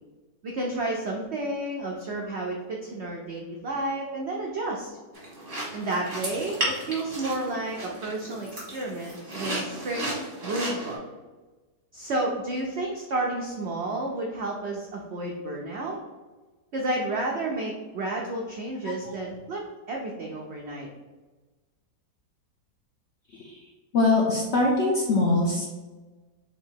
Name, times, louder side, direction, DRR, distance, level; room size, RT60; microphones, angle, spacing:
voice 1, 0.4-5.0 5.7-10.0 10.4-11.0 11.9-16.0 16.7-20.9, right 2 dB, 75° right, -1 dB, 0.6 m, -31 dB
sound 1, 5.1-11.0, right 1 dB, 35° right, 1.7 m, -34 dB
voice 2, 23.9-25.7, left 2 dB, 65° left, -2 dB, 0.7 m, -22 dB
3.9 x 2.8 x 4.4 m, 1.3 s
omnidirectional pair, 1.8 m